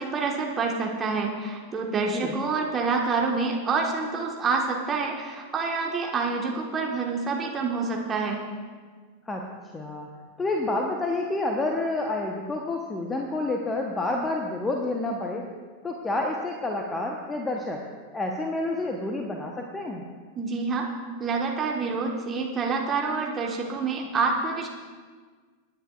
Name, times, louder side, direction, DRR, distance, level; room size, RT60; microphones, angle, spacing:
voice 1, 0.0-8.4 20.3-20.9 21.2-24.7, right 4 dB, 20° right, 0 dB, 1.4 m, -27 dB
voice 2, 9.7-10.1 10.4-15.4 15.8-17.8 18.1-20.0, left 2 dB, 15° left, 1 dB, 1.0 m, -29 dB
24.5 x 10.0 x 2.4 m, 1.5 s
figure-of-eight pair, 90°, 0 cm